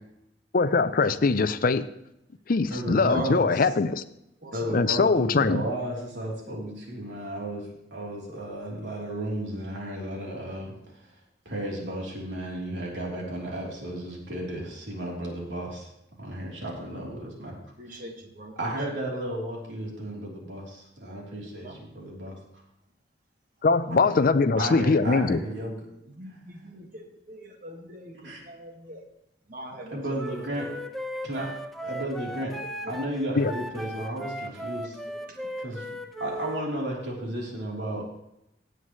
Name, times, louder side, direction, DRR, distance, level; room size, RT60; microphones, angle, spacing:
voice 1, 0.5-1.8 2.5-4.0 4.7-5.6 23.6-25.4 33.4-33.5, left 4 dB, 55° left, 13 dB, 0.5 m, -22 dB
voice 2, 2.7-3.5 4.5-10.7 11.0-11.1 11.4-15.9 16.2-17.6 17.9-18.0 18.6-22.4 24.6-25.7 28.1-28.4 29.9-30.7 31.2-31.5 31.8-32.5 32.8-35.0 35.6-38.0, right 1 dB, 80° right, -2 dB, 3.4 m, -33 dB
voice 3, 4.4-4.8 17.8-18.6 18.9-19.2 21.6-21.8 23.9-24.1 26.1-29.0 29.5-30.0 30.3-30.4 31.8-32.1 32.6-33.2 33.7-33.8 34.6-34.7 35.1-35.7, equal, 50° right, 2 dB, 1.8 m, -43 dB
Wind instrument woodwind instrument, 30.1-36.7, equal, ahead, 0.7 m, -37 dB
17.0 x 7.9 x 3.1 m, 0.82 s
head